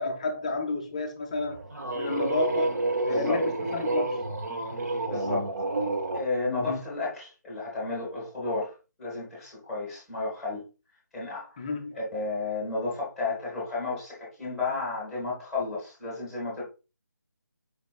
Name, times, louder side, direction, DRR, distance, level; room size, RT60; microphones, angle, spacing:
voice 1, 0.0-1.6 1.9-4.2 6.5-6.8 11.6-12.0, left 3 dB, 20° left, 0.4 m, -31 dB
sound 1, 1.4-6.3, right 2 dB, 65° right, 0.9 m, -29 dB
voice 2, 3.1-3.4 5.0-5.5 6.1-10.6 11.1-11.7 11.9-16.6, left 3 dB, ahead, 1.6 m, -32 dB
5.2 x 3.8 x 2.4 m
figure-of-eight pair, 155°, 10 cm